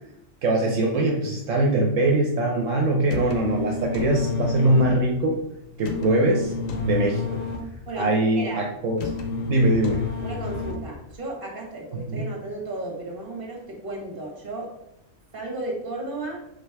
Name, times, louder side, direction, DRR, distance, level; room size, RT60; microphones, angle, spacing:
voice 1, 0.4-5.4 5.8-6.5 6.8-7.4 8.0-9.1 9.4-10.0 12.1-12.2, right 1 dB, 75° right, 1 dB, 1.1 m, -22 dB
sound 1, 3.1-11.1, left 4 dB, 80° left, 1.2 m, -30 dB
voice 2, 7.8-8.7 10.2-14.8 15.3-16.4, right 2 dB, 40° right, 0 dB, 1.7 m, -34 dB
5.1 x 4.1 x 4.6 m, 0.82 s
omnidirectional pair, 1.4 m